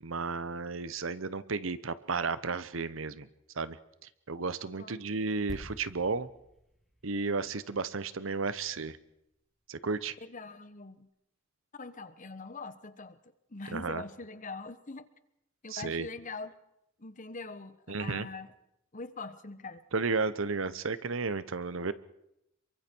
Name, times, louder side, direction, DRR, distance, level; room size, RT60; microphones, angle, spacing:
voice 1, 0.0-3.3 3.5-3.8 4.3-6.3 7.0-9.0 9.7-10.1 13.7-14.0 15.7-16.1 17.9-18.3 19.9-21.9, right 4 dB, 70° right, 15 dB, 0.9 m, -33 dB
sound 1, 5.5-9.1 9.4-9.6, equal, ahead, 2.9 m, -50 dB
voice 2, 10.2-11.1 11.7-13.2 13.5-15.1 15.6-16.6 17.0-18.5 18.9-19.8, left 3 dB, 40° left, 13 dB, 1.1 m, -43 dB
27.5 x 23.5 x 4.6 m, 0.81 s
head